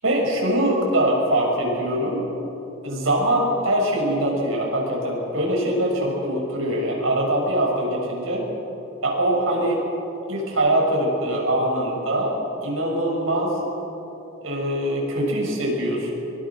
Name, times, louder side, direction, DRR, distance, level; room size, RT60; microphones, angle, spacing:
voice 1, 0.0-2.2 2.8-8.4 9.0-9.8 10.3-13.6 14.4-16.1, right 1 dB, 75° right, -1 dB, 7.5 m, -23 dB
25.0 x 24.0 x 6.5 m, 3.0 s
head